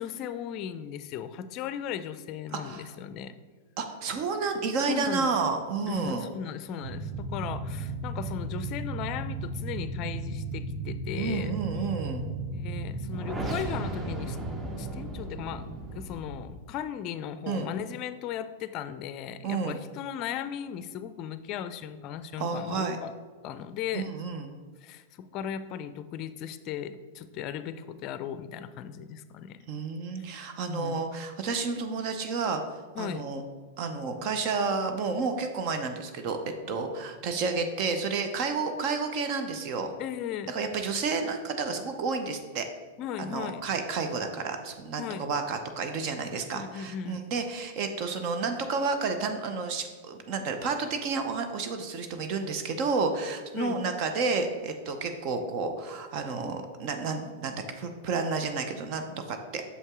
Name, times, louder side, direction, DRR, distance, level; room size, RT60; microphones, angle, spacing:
voice 1, 0.0-3.3 4.9-5.3 5.9-11.5 12.5-14.4 14.8-23.1 23.4-24.1 24.8-29.6 30.2-30.3 30.7-31.0 32.9-33.2 40.0-40.6 43.0-43.6 45.0-45.2 46.5-47.2 53.5-53.8, left 9 dB, 40° left, 12 dB, 0.4 m, -37 dB
voice 2, 2.5-2.9 3.8-6.3 11.2-12.2 17.5-17.7 19.4-19.8 22.4-23.0 23.9-24.5 29.7-32.6 33.0-33.4 33.8-39.9 40.5-42.7 43.3-59.6, right 4 dB, 50° right, 6 dB, 0.7 m, -31 dB
sound 1, 6.8-16.5, right 2 dB, 20° right, 0.9 m, -35 dB
6.5 x 5.4 x 3.7 m, 1.5 s
hypercardioid pair, 115°, 0 cm